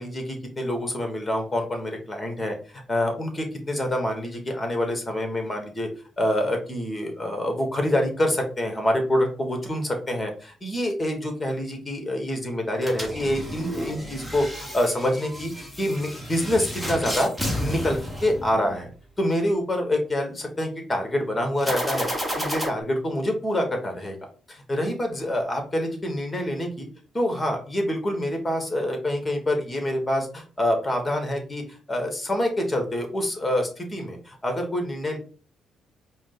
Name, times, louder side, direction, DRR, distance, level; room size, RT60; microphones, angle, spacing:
voice 1, 0.0-5.9 6.2-15.5 15.8-18.9 19.2-22.1 22.4-24.2 24.5-26.9 27.1-35.2, left 1 dB, 20° left, 4 dB, 1.4 m, -26 dB
sound 1, 12.8-18.9 21.6-22.7, equal, 5° right, 1.2 m, -32 dB
4.8 x 2.1 x 3.9 m, 0.38 s
cardioid pair, 90°, 0 cm